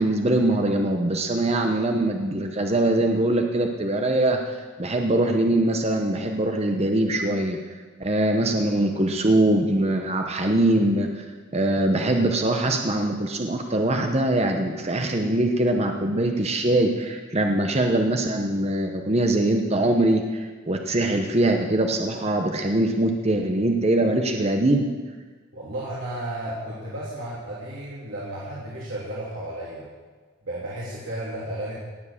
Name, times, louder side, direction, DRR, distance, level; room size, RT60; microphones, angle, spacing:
voice 1, 0.0-7.6 8.0-11.2 11.5-24.9, right 1 dB, 30° right, 3 dB, 0.9 m, -22 dB
voice 2, 25.5-29.9 30.4-31.7, right 1 dB, 80° right, -7 dB, 3.1 m, -33 dB
18.0 x 7.4 x 7.2 m, 1.4 s
head